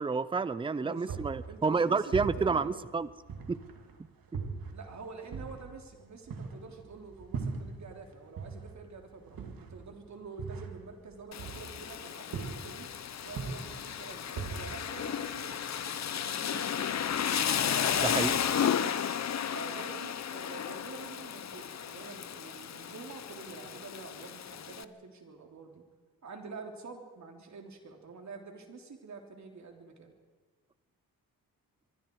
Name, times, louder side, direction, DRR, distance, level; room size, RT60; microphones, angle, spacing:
voice 1, 0.0-3.1 3.5-3.6 4.3-4.4 17.9-18.4, right 4 dB, 15° right, 16 dB, 0.6 m, -29 dB
voice 2, 0.8-1.2 1.5-2.9 4.7-12.9 13.2-17.0 19.5-25.8 26.2-30.1, right 4 dB, 50° right, 3 dB, 3.5 m, -47 dB
sound 1, 1.1-3.9 4.3-8.1 8.4-12.0 12.3-12.9 13.2-15.6, right 5 dB, 70° right, 2.5 m, -40 dB
Rain, 11.3-24.8, left 8 dB, 45° left, 0.8 m, -33 dB
24.5 x 23.5 x 4.8 m, 1.5 s
wide cardioid pair, 130°, 36 cm